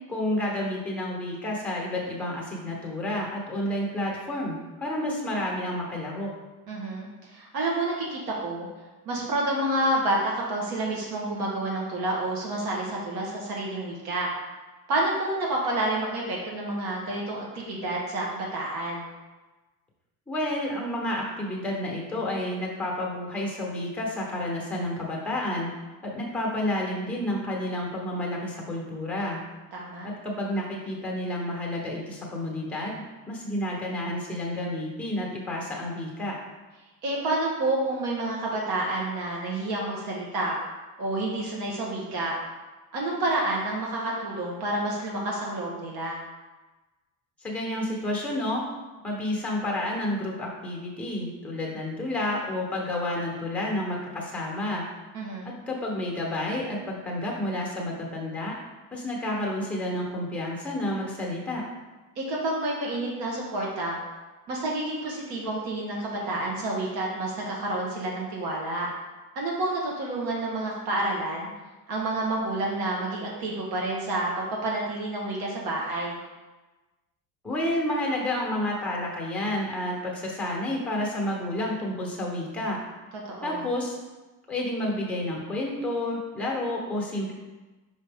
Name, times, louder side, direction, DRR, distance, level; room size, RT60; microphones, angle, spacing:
voice 1, 0.1-6.3 20.3-25.7 26.0-29.4 30.0-36.4 47.4-48.7 49.0-54.8 55.4-58.5 58.9-61.6 77.4-82.8 83.4-84.0 84.5-87.3, left 1 dB, 5° left, -2 dB, 1.0 m, -30 dB
voice 2, 6.7-8.7 9.0-14.3 14.9-19.1 29.7-30.1 37.0-40.6 41.0-42.3 42.9-46.2 55.1-55.6 62.2-64.0 64.5-68.9 69.3-71.5 71.9-76.2 83.3-83.7, right 2 dB, 90° right, -3 dB, 1.4 m, -29 dB
5.3 x 5.1 x 3.5 m, 1.2 s
cardioid pair, 175°, 36 cm